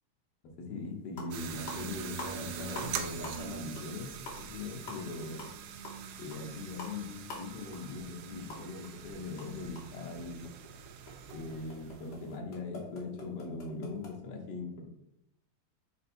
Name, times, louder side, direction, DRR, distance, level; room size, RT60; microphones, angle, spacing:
voice 1, 0.6-4.1 4.4-5.5 6.2-10.5 11.3-14.8, left 3 dB, 65° left, 0 dB, 1.7 m, -41 dB
sound 1, 0.8-0.9 1.1-1.4 1.7-2.9 3.2-3.5 3.8-3.9 4.2-8.9 9.2-14.1, left 2 dB, 50° left, 1.3 m, -46 dB
sound 2, 1.3-12.4, right 8 dB, 80° right, 2.0 m, -43 dB
5.3 x 4.3 x 4.4 m, 0.82 s
omnidirectional pair, 3.6 m